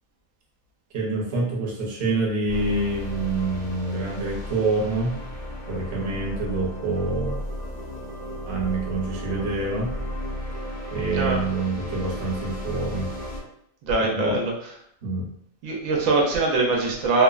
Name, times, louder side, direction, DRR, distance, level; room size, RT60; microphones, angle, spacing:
voice 1, 0.9-5.2 5.7-7.4 8.4-9.9 10.9-13.1 14.1-14.4 15.0-15.3, right 3 dB, 60° right, -2 dB, 0.9 m, -26 dB
sound 1, 2.5-13.4, left 1 dB, 15° right, 0.6 m, -34 dB
voice 2, 13.9-14.5 15.6-17.2, right 3 dB, 85° right, -1 dB, 1.0 m, -22 dB
2.7 x 2.0 x 2.3 m, 0.72 s
omnidirectional pair, 1.3 m